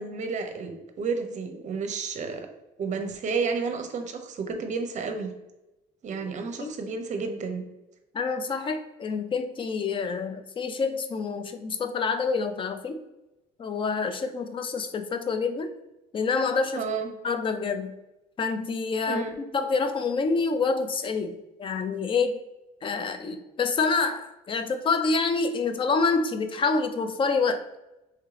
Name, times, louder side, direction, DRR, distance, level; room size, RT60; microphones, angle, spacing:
voice 1, 0.0-2.4 2.8-5.3 6.0-7.6 16.7-17.1 19.1-19.4, right 4 dB, 45° right, 6 dB, 0.6 m, -31 dB
voice 2, 8.1-13.0 13.6-15.7 16.1-16.8 17.2-18.0 18.4-19.2 19.5-22.4 22.8-27.8, left 4 dB, 30° left, 8 dB, 0.4 m, -27 dB
3.5 x 3.3 x 3.2 m, 0.96 s
cardioid pair, 110°, 17 cm